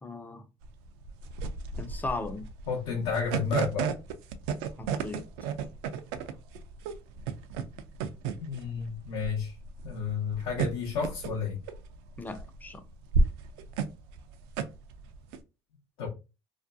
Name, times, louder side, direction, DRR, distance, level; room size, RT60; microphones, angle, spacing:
voice 1, 0.0-0.5 1.8-2.5 4.8-5.3 12.2-12.8, left 3 dB, 15° left, 0.5 m, -37 dB
sound 1, 0.6-15.4, right 4 dB, 80° right, 0.4 m, -33 dB
voice 2, 2.7-3.8 8.4-9.5 9.8-11.6 16.0-16.1, left 6 dB, 80° left, 0.8 m, -31 dB
2.5 x 2.2 x 2.5 m
supercardioid pair, 80°, 14 cm